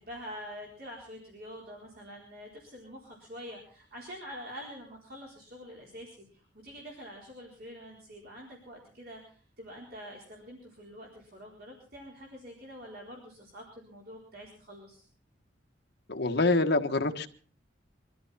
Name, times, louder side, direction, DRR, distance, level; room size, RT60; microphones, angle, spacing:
voice 1, 0.0-6.2 6.6-15.0, equal, 55° right, 4.2 m, -46 dB
voice 2, 16.1-17.3, left 2 dB, 60° left, 1.5 m, -26 dB
23.5 x 13.5 x 4.3 m
head